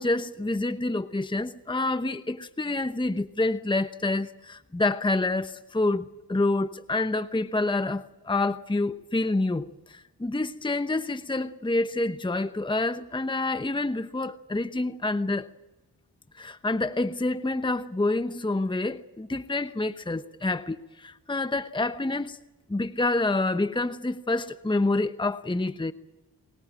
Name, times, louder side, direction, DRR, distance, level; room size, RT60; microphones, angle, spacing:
voice 1, 0.0-15.5 16.3-22.4 22.7-25.9, left 2 dB, 10° left, 1.0 m, -27 dB
24.0 x 21.5 x 7.5 m
cardioid pair, 50°, 41 cm